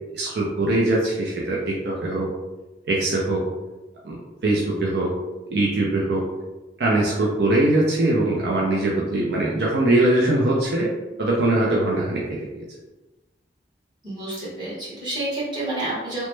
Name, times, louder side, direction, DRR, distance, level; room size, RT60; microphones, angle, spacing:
voice 1, 0.1-2.3 2.8-3.4 4.0-5.1 5.5-6.2 6.8-10.9 11.2-12.7, right 2 dB, 70° right, -4 dB, 0.5 m, -22 dB
voice 2, 14.0-16.3, right 1 dB, 25° right, -10 dB, 1.3 m, -29 dB
3.0 x 2.1 x 3.1 m, 1.1 s
head